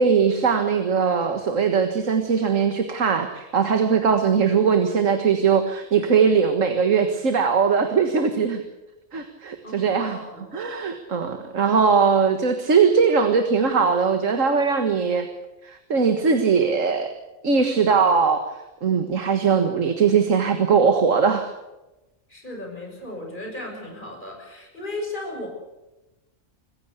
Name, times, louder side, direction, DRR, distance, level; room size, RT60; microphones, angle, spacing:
voice 1, 0.0-8.6 9.1-10.2 10.5-15.3 15.6-17.1 17.4-18.5 18.8-21.5, right 6 dB, 85° right, 7 dB, 2.0 m, -20 dB
voice 2, 9.6-10.5 22.3-25.5, left 1 dB, 40° left, 1 dB, 6.5 m, -35 dB
26.0 x 15.5 x 8.3 m, 1.0 s
omnidirectional pair, 1.3 m